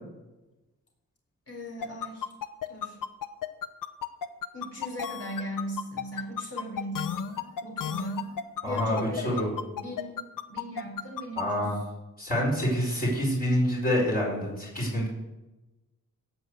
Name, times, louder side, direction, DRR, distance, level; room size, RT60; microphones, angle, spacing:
voice 1, 1.5-2.3 2.7-3.0 4.5-7.3 7.6-8.2 8.6-11.9, equal, 45° left, 0 dB, 3.9 m, -38 dB
sound 1, 1.8-11.4, left 9 dB, 75° left, 0.9 m, -33 dB
voice 2, 8.6-9.5 11.4-11.8 12.2-15.1, equal, 30° left, -4 dB, 4.5 m, -27 dB
16.5 x 6.5 x 8.1 m, 1.1 s
wide cardioid pair, 135°, 32 cm